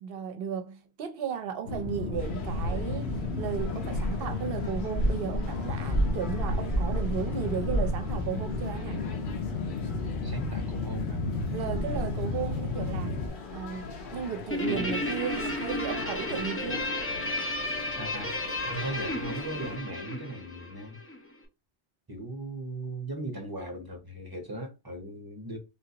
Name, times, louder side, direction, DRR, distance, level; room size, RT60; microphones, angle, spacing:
voice 1, 0.0-9.0 11.5-13.2 13.5-13.9 14.1-16.9, right 7 dB, 60° right, 0.8 m, -35 dB
sound 1, 1.6-13.3, left 1 dB, 75° left, 1.2 m, -31 dB
sound 2, 2.2-19.8, left 4 dB, 55° left, 0.8 m, -44 dB
voice 2, 10.2-11.2 14.3-14.4 14.7-15.1 17.9-18.3 18.6-21.0 22.1-25.6, right 2 dB, 20° right, 0.9 m, -38 dB
Guitar, 14.5-21.2, left 1 dB, 20° left, 0.3 m, -33 dB
3.8 x 2.5 x 2.8 m
omnidirectional pair, 1.2 m